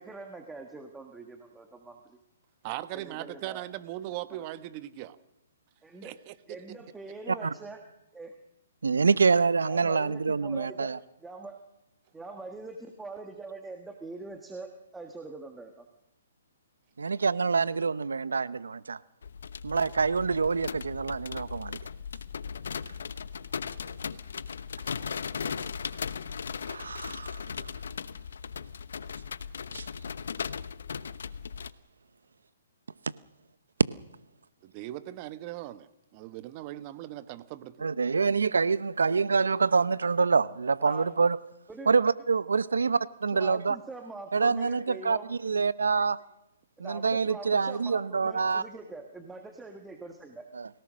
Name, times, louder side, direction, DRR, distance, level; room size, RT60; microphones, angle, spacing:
voice 1, 0.0-2.2 2.9-3.6 4.3-4.4 5.8-6.1 6.5-7.8 8.1-8.4 9.6-10.9 11.2-11.6 12.1-15.9 40.8-41.1 41.7-41.9 43.3-45.3 46.8-50.4, right 3 dB, 5° right, 4 dB, 1.6 m, -43 dB
voice 2, 2.6-5.2 6.0-6.6 34.6-35.9 36.1-37.9, right 14 dB, 30° right, 13 dB, 1.2 m, -39 dB
voice 3, 8.8-11.0 17.0-19.0 19.6-21.8 26.7-27.7 29.7-29.9 37.8-41.4 41.9-43.8 44.3-46.2 46.8-48.6 50.5-50.7, right 5 dB, 90° right, 17 dB, 0.9 m, -26 dB
sound 1, 19.2-31.7, left 6 dB, 75° left, 1.0 m, -37 dB
28.5 x 17.5 x 6.4 m, 0.93 s
hypercardioid pair, 150°, 0 cm